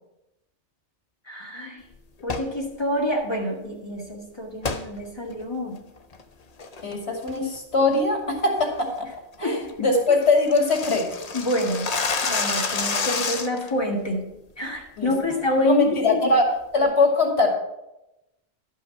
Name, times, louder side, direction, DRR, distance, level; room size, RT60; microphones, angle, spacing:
voice 1, 1.3-1.8 2.2-5.8 9.4-9.6 11.3-11.9 12.2-14.2 14.6-16.4, left 1 dB, 25° left, -1 dB, 1.9 m, -27 dB
sound 1, 2.2-2.5 4.6-4.8 5.3-5.4 6.0-6.2 6.6-6.9 7.3-7.6 7.9-8.0 8.4-8.6 9.0-9.1 9.4-9.5 9.7-9.8 10.1-13.7, left 4 dB, 40° left, 0.7 m, -28 dB
voice 2, 6.8-9.1 9.4-11.0 15.0-15.1 15.7-16.4 16.7-17.5, left 3 dB, 75° left, 1 dB, 2.5 m, -21 dB
11.5 x 5.6 x 5.8 m, 0.91 s
omnidirectional pair, 1.1 m